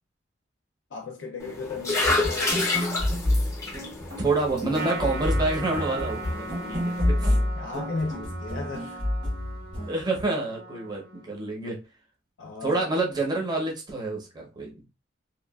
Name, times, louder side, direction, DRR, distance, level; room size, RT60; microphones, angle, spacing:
voice 1, 0.9-2.7 7.5-9.0 12.4-12.8, left 3 dB, 70° left, 0.4 m, -35 dB
sound 1, 1.4-7.0, left 2 dB, 15° left, 0.5 m, -30 dB
sound 2, 2.0-9.9, left 1 dB, 85° right, 1.3 m, -29 dB
voice 2, 4.2-7.4 9.9-11.8 12.6-14.8, right 2 dB, 20° right, 0.6 m, -28 dB
Trumpet, 4.7-11.4, right 2 dB, 55° right, 0.8 m, -39 dB
2.8 x 2.2 x 2.2 m
head